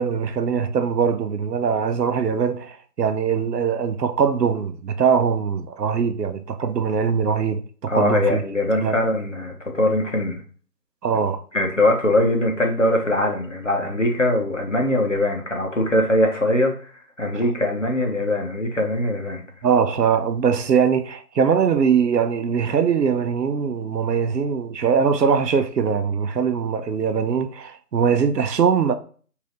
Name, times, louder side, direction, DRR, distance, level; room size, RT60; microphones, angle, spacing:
voice 1, 0.0-8.4 8.8-9.0 11.0-11.4 17.3-17.4 19.6-29.0, right 6 dB, 85° right, 0.6 m, -21 dB
voice 2, 7.9-10.4 11.5-16.9 17.2-19.4, left 1 dB, 50° left, 0.8 m, -21 dB
3.3 x 2.7 x 3.8 m
figure-of-eight pair, 180°, 48 cm